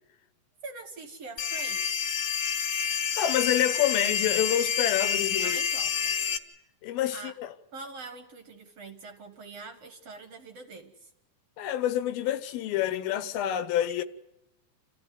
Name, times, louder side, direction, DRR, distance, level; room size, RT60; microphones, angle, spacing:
voice 1, 0.6-2.1 5.4-6.2 7.1-7.3 7.7-11.1 14.0-14.1, right 3 dB, 55° right, 2.2 m, -44 dB
sound 1, 1.4-6.4, left 8 dB, 60° left, 2.1 m, -28 dB
voice 2, 3.2-5.6 6.8-7.5 11.6-14.0, left 11 dB, 80° left, 2.8 m, -27 dB
29.0 x 14.5 x 9.5 m
omnidirectional pair, 4.2 m